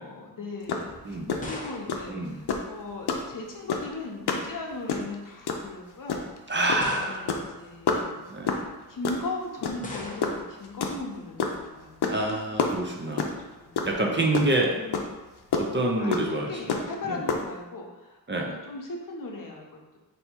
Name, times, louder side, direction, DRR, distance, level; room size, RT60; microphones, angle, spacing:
voice 1, 0.0-1.2 1.4-6.3 6.8-11.9 13.2-13.8 14.1-15.2 16.0-18.2 18.5-20.0, left 2 dB, 55° left, 0 dB, 0.8 m, -38 dB
sound 1, 0.7-0.9 1.1-1.4 1.9-2.1 2.5-2.7 3.1-3.3 3.7-3.9 4.3-4.5 4.7-5.2 5.5-5.7 6.1-6.4 6.7-6.9 7.1-7.5 7.9-8.0 8.5-8.7 9.0-9.2 9.6-10.0 10.2-11.6 12.0-12.3 12.6-13.4 13.8-13.9 14.2-14.6 14.9-15.0 15.5-15.6 16.1-16.2 16.7-16.9 17.3-17.4, left 6 dB, 90° left, 0.6 m, -26 dB
sound 2, 0.8-3.2 4.2-4.6 5.5-5.6 6.8-7.6 9.8-10.6, left 2 dB, 20° left, 0.7 m, -40 dB
voice 2, 2.1-2.4 6.5-7.4 8.3-8.6 12.1-13.4 13.9-14.7 15.5-16.5 17.1-17.2 18.3-18.5, right 2 dB, 30° right, 0 dB, 0.5 m, -27 dB
3.4 x 2.7 x 4.3 m, 1.1 s
wide cardioid pair, 95°, 38 cm